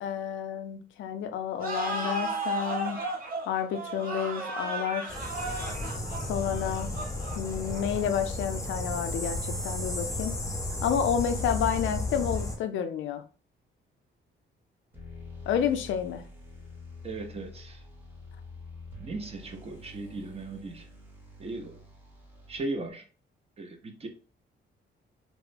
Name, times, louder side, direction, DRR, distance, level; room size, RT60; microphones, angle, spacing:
voice 1, 0.0-3.0 3.5-5.2 6.3-6.9 7.3-10.4 10.8-13.2 15.5-16.2, left 8 dB, 75° left, 0.4 m, -30 dB
sound 1, 1.6-8.0, right 2 dB, 45° right, 0.9 m, -35 dB
sound 2, 5.1-12.6, left 1 dB, 15° left, 0.5 m, -33 dB
sound 3, 14.9-22.9, left 2 dB, 10° right, 0.9 m, -47 dB
voice 2, 17.0-17.8 19.0-20.9 21.4-21.8 22.5-23.0 23.6-24.1, right 2 dB, 30° right, 0.5 m, -37 dB
2.9 x 2.0 x 2.4 m
cardioid pair, 115°, 20 cm